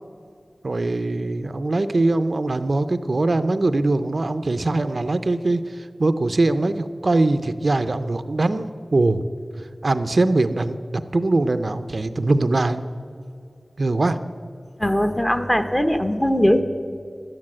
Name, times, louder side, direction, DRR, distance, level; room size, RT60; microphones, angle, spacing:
voice 1, 0.6-9.2 9.8-12.8 13.8-14.2, right 2 dB, 60° right, 10 dB, 0.5 m, -22 dB
voice 2, 14.8-16.6, equal, 15° left, 8 dB, 0.9 m, -20 dB
11.5 x 9.7 x 7.4 m, 2.3 s
wide cardioid pair, 65°, 0 cm